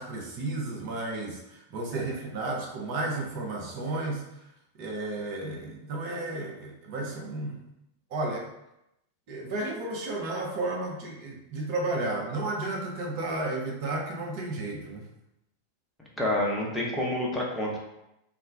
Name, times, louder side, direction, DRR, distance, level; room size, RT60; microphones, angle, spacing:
voice 1, 0.0-4.2 4.8-7.6 8.1-8.5 9.3-15.1, right 2 dB, 45° right, -1 dB, 0.6 m, -33 dB
voice 2, 16.2-17.8, left 1 dB, 5° left, -4 dB, 0.7 m, -28 dB
2.3 x 2.1 x 3.3 m, 0.86 s
figure-of-eight pair, 90°, 0 cm